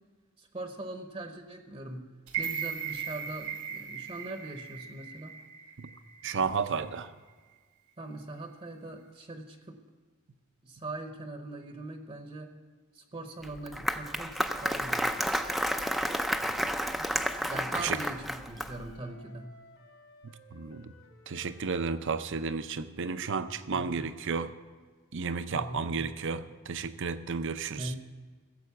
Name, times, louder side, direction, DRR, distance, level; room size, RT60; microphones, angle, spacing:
voice 1, 0.4-2.1 2.4-5.3 8.0-9.8 10.6-12.5 12.9-15.1 17.4-19.6 23.7-24.1 25.5-26.1 27.8-28.0, right 2 dB, 30° right, 6 dB, 0.9 m, -41 dB
sound 1, 2.3-6.4 6.8-6.9, right 8 dB, 80° right, 1.8 m, -38 dB
voice 2, 6.2-7.1 17.8-18.0 20.2-20.9 21.3-24.5 25.1-27.9, right 5 dB, 60° right, 12 dB, 0.6 m, -32 dB
Wind instrument woodwind instrument, 13.3-17.3 18.3-21.7, left 2 dB, 75° left, 3.9 m, -57 dB
Applause, 13.4-18.9, equal, ahead, 0.5 m, -31 dB
15.5 x 7.6 x 7.0 m, 1.5 s
head